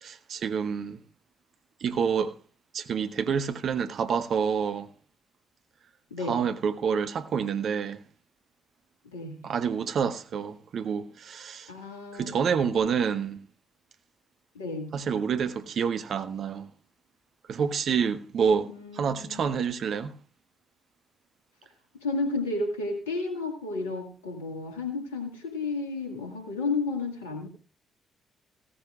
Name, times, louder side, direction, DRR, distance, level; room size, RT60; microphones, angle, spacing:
voice 1, 0.0-1.0 1.8-2.3 2.7-4.9 6.3-8.0 9.4-11.7 12.1-13.4 14.9-16.7 17.5-20.1, right 6 dB, 55° right, 0.9 m, -28 dB
voice 2, 11.7-12.4 14.5-14.9 18.7-19.5 22.0-27.5, left 3 dB, 80° left, 1.9 m, -32 dB
16.0 x 13.5 x 2.4 m
figure-of-eight pair, 40°, 0 cm